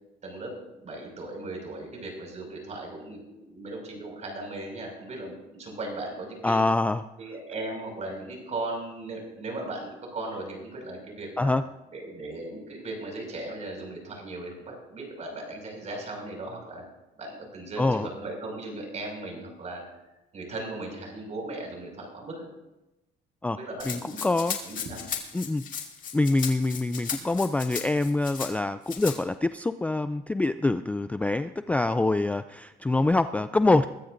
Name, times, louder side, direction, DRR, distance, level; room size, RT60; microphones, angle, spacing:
voice 1, 0.2-6.6 7.2-11.5 11.9-16.8 17.2-19.8 20.3-22.5 23.5-24.2 24.6-25.0, right 2 dB, 45° right, 1 dB, 5.7 m, -37 dB
voice 2, 6.4-7.0 11.4-11.6 17.8-18.1 23.4-23.6 23.8-24.6 25.3-25.6 26.1-33.9, left 2 dB, 10° left, 11 dB, 0.3 m, -25 dB
Rattle (instrument), 23.8-28.5 28.9-29.2, left 7 dB, 50° left, 2.3 m, -36 dB
22.0 x 13.5 x 2.6 m, 0.98 s
cardioid pair, 110°, 17 cm